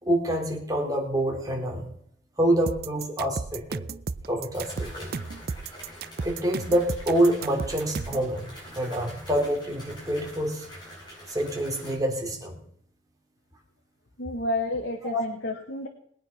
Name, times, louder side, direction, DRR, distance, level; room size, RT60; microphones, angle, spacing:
voice 1, 0.0-1.9 2.4-3.9 4.3-5.1 6.2-8.4 8.7-10.7 11.3-12.6 15.0-15.2, right 1 dB, 20° right, 1 dB, 3.2 m, -26 dB
sound 1, 2.7-8.3, right 4 dB, 55° right, 0.5 m, -34 dB
sound 2, 3.5-3.6 4.5-11.9, equal, 25° left, 7.0 m, -45 dB
voice 2, 14.2-15.9, left 2 dB, 75° left, 3 dB, 1.5 m, -30 dB
20.5 x 9.1 x 5.9 m, 0.68 s
head